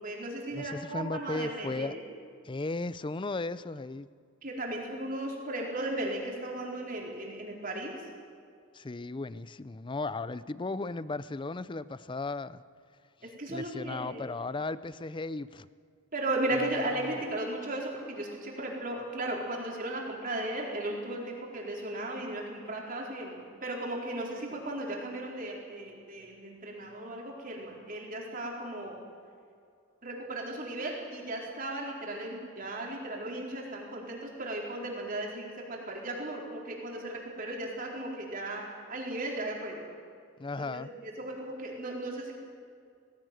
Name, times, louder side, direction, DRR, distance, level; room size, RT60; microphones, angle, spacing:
voice 1, 0.0-2.0 4.4-7.9 13.2-14.3 16.1-29.0 30.0-38.6 38.9-39.8 40.6-42.4, right 1 dB, 40° right, 4.3 m, -36 dB
voice 2, 0.5-1.9 2.4-4.1 8.7-12.6 13.5-15.7 16.6-16.7 40.4-40.9, left 3 dB, 25° left, 0.5 m, -36 dB
18.0 x 17.5 x 9.2 m
head